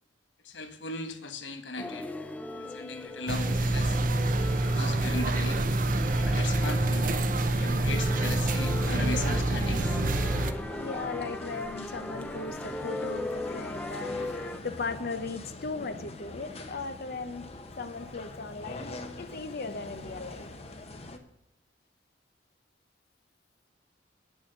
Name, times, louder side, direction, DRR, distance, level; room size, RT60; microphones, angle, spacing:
voice 1, 0.4-2.1 2.6-4.0 4.6-5.6 6.2-7.1 7.5-10.0, left 3 dB, 85° left, 1.3 m, -37 dB
sound 1, 1.8-14.6, left 1 dB, 10° left, 0.6 m, -38 dB
sound 2, 3.3-10.5, right 2 dB, 50° right, 0.8 m, -27 dB
sound 3, 6.2-21.2, left 2 dB, 35° left, 1.0 m, -44 dB
voice 2, 10.1-20.5, left 4 dB, 55° left, 0.7 m, -38 dB
9.4 x 7.0 x 6.4 m
head